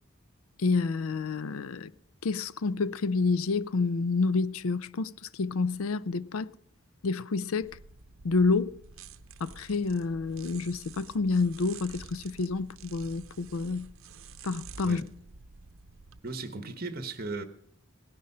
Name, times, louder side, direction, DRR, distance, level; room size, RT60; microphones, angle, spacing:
voice 1, 0.6-1.9 2.2-6.5 7.0-7.8 8.2-8.8 9.4-13.9 14.4-15.0, left 4 dB, 90° left, 0.5 m, -29 dB
sound 1, 7.6-16.2, right 5 dB, 80° right, 0.7 m, -49 dB
voice 2, 16.2-17.4, right 3 dB, 45° right, 1.2 m, -36 dB
18.0 x 10.5 x 5.5 m
head